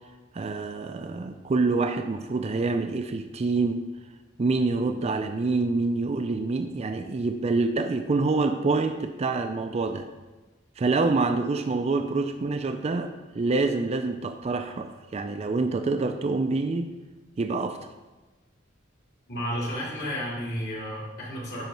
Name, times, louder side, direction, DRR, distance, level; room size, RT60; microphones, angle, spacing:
voice 1, 0.3-3.8 4.4-10.1 10.8-16.9 17.4-17.8, right 3 dB, 35° right, 6 dB, 0.4 m, -26 dB
voice 2, 19.3-21.6, equal, 55° left, -5 dB, 2.7 m, -32 dB
10.5 x 3.9 x 4.6 m, 1.2 s
head